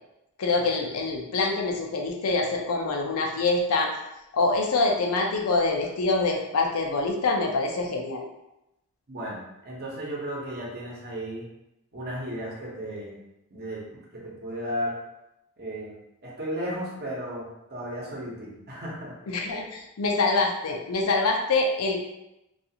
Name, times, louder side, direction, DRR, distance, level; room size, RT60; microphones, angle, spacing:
voice 1, 0.4-3.9 4.3-8.3 19.3-22.0, left 3 dB, 75° left, 1 dB, 0.5 m, -25 dB
voice 2, 9.1-11.5 11.9-13.2 13.5-15.0 15.6-15.9 16.2-19.1, equal, 45° right, -4 dB, 0.8 m, -34 dB
2.4 x 2.4 x 2.7 m, 0.88 s
head